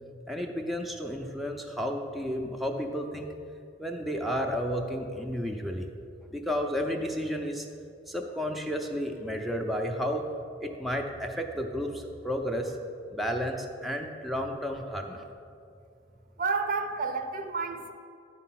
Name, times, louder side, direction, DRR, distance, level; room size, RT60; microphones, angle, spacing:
voice 1, 0.3-3.3 3.8-5.9 6.3-7.7 8.1-10.3 10.6-12.7 13.1-15.3, equal, ahead, 1 dB, 0.5 m, -32 dB
voice 2, 16.4-17.9, right 4 dB, 50° right, 7 dB, 0.6 m, -30 dB
9.7 x 4.6 x 5.8 m, 2.4 s
head